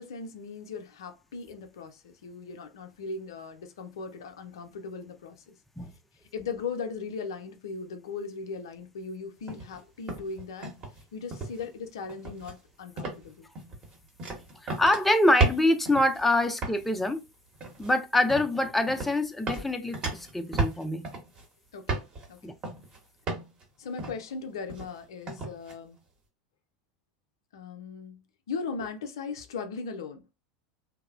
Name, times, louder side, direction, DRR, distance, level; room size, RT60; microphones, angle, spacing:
voice 1, 0.0-5.6 6.3-10.7 11.1-13.5 21.7-22.0 22.3-22.6 23.8-26.0 27.5-30.2, left 4 dB, 65° left, 0.4 m, -38 dB
sound 1, 9.5-9.8 10.1-11.0 11.3-11.7 12.1-12.6 13.0-13.3 13.5-16.2 16.6-16.9 17.5-17.9 18.3-18.5 18.9-19.2 19.5-21.4 21.9-22.3 22.6-23.0 23.3-23.6 24.0-24.3 24.7-25.0 25.3-25.7, right 3 dB, 35° right, 0.9 m, -33 dB
voice 2, 14.6-17.2 17.8-21.1 22.4-22.5, left 1 dB, 5° left, 0.3 m, -25 dB
2.8 x 2.0 x 2.3 m
figure-of-eight pair, 80°, 3 cm